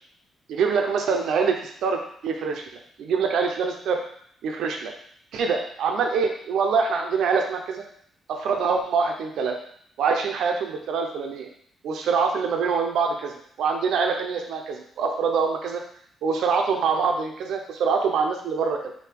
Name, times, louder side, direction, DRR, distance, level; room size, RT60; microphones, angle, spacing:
voice 1, 0.5-2.6 3.0-4.0 4.4-4.9 5.3-7.8 8.3-9.5 10.0-11.5 11.8-13.3 13.6-15.8 16.2-18.9, right 5 dB, 80° right, 2 dB, 0.5 m, -24 dB
4.7 x 2.7 x 3.4 m, 0.63 s
cardioid pair, 130°, 0 cm